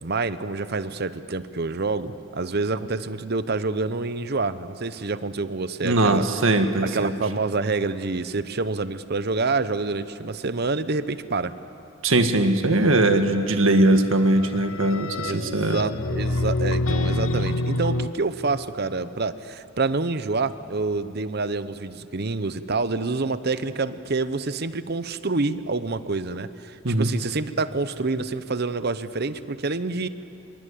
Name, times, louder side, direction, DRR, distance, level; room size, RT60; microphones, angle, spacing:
voice 1, 0.0-6.3 6.8-11.5 15.2-30.1, right 3 dB, 50° right, 13 dB, 0.8 m, -27 dB
voice 2, 5.8-7.1 12.0-15.8 26.8-27.1, right 2 dB, 75° right, 7 dB, 1.7 m, -20 dB
sound 1, 14.1-18.1, left 2 dB, 75° left, 0.9 m, -26 dB
25.5 x 22.5 x 8.5 m, 2.6 s
head